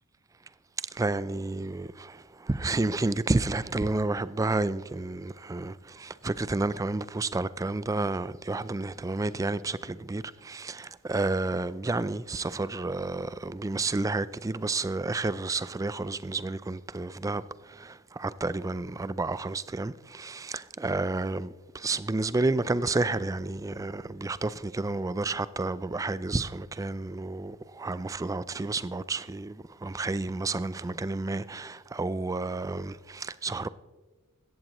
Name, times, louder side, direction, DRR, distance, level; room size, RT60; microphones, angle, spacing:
voice 1, 0.9-33.7, right 2 dB, 15° right, 0.3 m, -31 dB
16.5 x 14.0 x 3.0 m
head